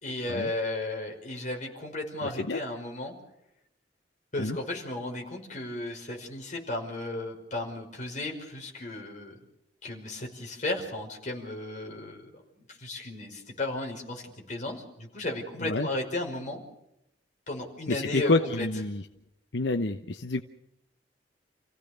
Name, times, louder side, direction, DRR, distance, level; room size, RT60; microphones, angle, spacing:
voice 1, 0.0-3.2 4.3-9.4 9.8-12.3 12.6-16.6 17.5-18.7, left 2 dB, 45° left, 1 dB, 5.4 m, -34 dB
voice 2, 17.9-19.0 19.5-20.4, left 2 dB, 80° left, 7 dB, 1.0 m, -28 dB
29.0 x 16.0 x 6.7 m, 0.84 s
head